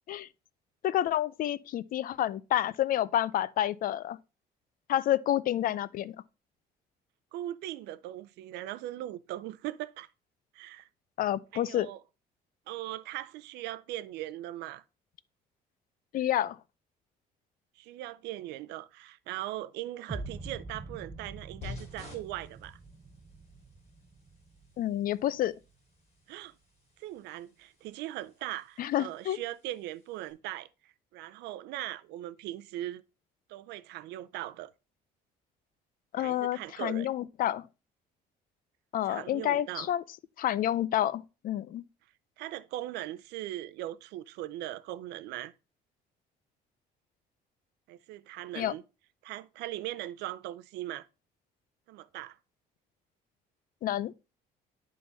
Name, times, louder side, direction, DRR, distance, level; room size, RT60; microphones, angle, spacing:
voice 1, 0.8-4.2 4.9-6.2 11.2-11.9 16.1-16.6 24.8-25.5 28.8-29.4 36.1-37.6 38.9-40.0 40.4-41.8 48.6-48.7 53.8-54.1, left 12 dB, 55° left, 0.5 m, -29 dB
voice 2, 7.3-10.1 10.5-10.9 11.5-12.0 12.7-14.8 17.8-22.8 26.3-26.5 27.0-33.0 33.5-34.7 36.2-37.1 39.0-39.9 42.4-45.5 47.9-48.8 49.2-51.1 51.9-52.4, right 14 dB, 85° right, 0.6 m, -39 dB
sound 1, 20.1-26.1, right 3 dB, 20° right, 0.8 m, -45 dB
sound 2, 21.6-30.3, left 5 dB, 40° left, 3.1 m, -52 dB
11.0 x 3.8 x 4.0 m
cardioid pair, 110°, 17 cm